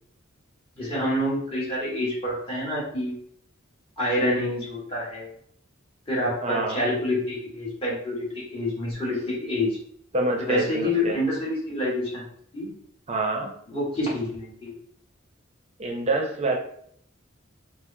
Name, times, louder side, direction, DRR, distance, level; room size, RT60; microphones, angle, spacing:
voice 1, 0.8-3.1 4.0-5.3 6.1-9.8 10.4-12.2 12.5-12.7 13.7-14.7, left 1 dB, 25° left, -6 dB, 1.4 m, -27 dB
voice 2, 6.4-6.8 10.1-11.2 13.1-13.5 15.8-16.6, right 2 dB, 30° right, 1 dB, 0.6 m, -26 dB
4.5 x 2.1 x 2.7 m, 0.65 s
head